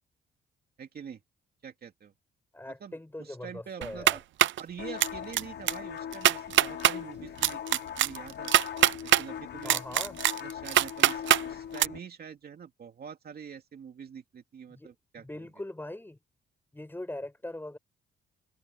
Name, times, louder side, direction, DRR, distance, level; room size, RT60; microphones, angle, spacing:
voice 1, 0.8-1.2 1.6-2.1 2.8-4.2 4.6-8.5 9.0-9.8 10.4-15.5, right 7 dB, 50° right, 2.6 m, -45 dB
voice 2, 2.5-4.2 9.6-10.2 14.7-14.9 15.2-16.2 16.7-17.8, left 1 dB, 10° left, 6.4 m, -41 dB
sound 1, 3.8-4.6 5.0-5.4 5.7-5.8 6.1-6.9 7.4-9.2 9.7-11.4 11.8-11.9, right 13 dB, 70° right, 0.7 m, -23 dB
sound 2, 4.8-12.0, left 9 dB, 60° left, 1.2 m, -40 dB
cardioid pair, 90°, 20 cm